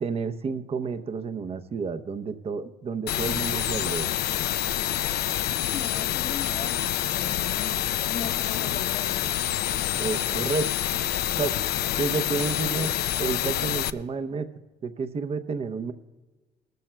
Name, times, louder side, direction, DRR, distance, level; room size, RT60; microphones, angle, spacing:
voice 1, 0.0-4.1 10.0-10.7 11.4-11.6 12.0-12.9 13.2-14.5 14.8-15.9, right 5 dB, 35° right, 10 dB, 0.7 m, -30 dB
sound 1, 3.1-13.9, left 13 dB, 75° left, 0.5 m, -27 dB
voice 2, 5.6-9.3, left 6 dB, 45° left, 7 dB, 0.9 m, -39 dB
19.0 x 13.0 x 2.2 m, 1.3 s
cardioid pair, 110°, 17 cm